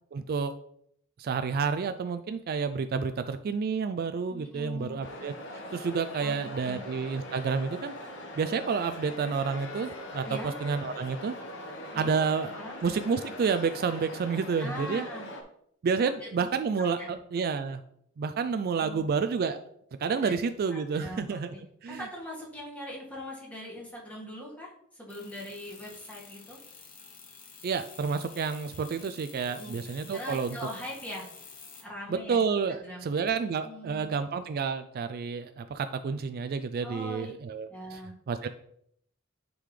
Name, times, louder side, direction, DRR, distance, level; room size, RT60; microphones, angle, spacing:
voice 1, 0.1-0.5 1.2-5.3 5.7-7.9 8.4-10.2 10.6-11.4 12.0-12.5 12.8-15.1 15.8-17.8 18.2-19.6 20.0-21.5 21.8-22.0 27.6-30.6 32.1-38.0 38.3-38.5, right 5 dB, 45° right, 9 dB, 0.3 m, -30 dB
voice 2, 4.3-5.0 6.2-6.8 10.2-10.5 11.9-12.1 12.5-12.8 14.6-15.3 16.2-16.5 16.8-17.2 18.8-19.2 20.2-20.4 20.7-21.6 21.9-26.6 29.5-29.8 30.1-31.3 31.8-32.4 32.7-33.1 33.6-34.3 36.8-37.3 37.7-38.1, left 1 dB, 5° left, -4 dB, 1.7 m, -41 dB
sound 1, 5.0-15.4, left 1 dB, 60° left, 1.2 m, -42 dB
sound 2, 25.1-31.8, left 5 dB, 40° left, 1.1 m, -50 dB
10.0 x 3.8 x 3.2 m, 0.70 s
head